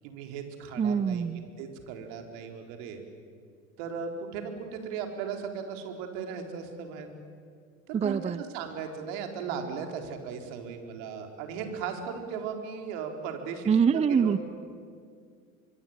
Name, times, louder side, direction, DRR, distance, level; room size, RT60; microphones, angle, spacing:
voice 1, 0.0-1.3 1.6-3.0 3.8-7.1 7.9-14.4, right 6 dB, 65° right, 4 dB, 4.2 m, -37 dB
voice 2, 0.8-1.5 7.9-8.4 13.7-14.4, right 7 dB, 15° right, 17 dB, 0.6 m, -24 dB
24.5 x 23.0 x 8.9 m, 2.1 s
hypercardioid pair, 75°, 41 cm